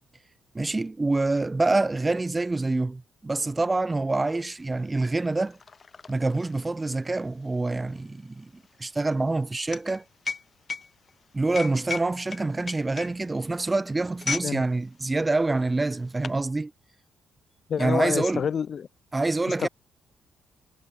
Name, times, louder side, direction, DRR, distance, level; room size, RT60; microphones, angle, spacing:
voice 1, 0.5-5.6 6.1-10.0 11.3-16.7 17.8-18.5 19.1-19.7, right 2 dB, 20° right, 2.1 m, -26 dB
sound 1, 4.3-4.4 4.6-14.6 14.9-15.1 15.8-16.4, left 5 dB, 35° left, 5.5 m, -36 dB
voice 2, 17.7-18.9 19.6-19.7, left 7 dB, 50° left, 3.3 m, -27 dB
cardioid pair, 90°, 0 cm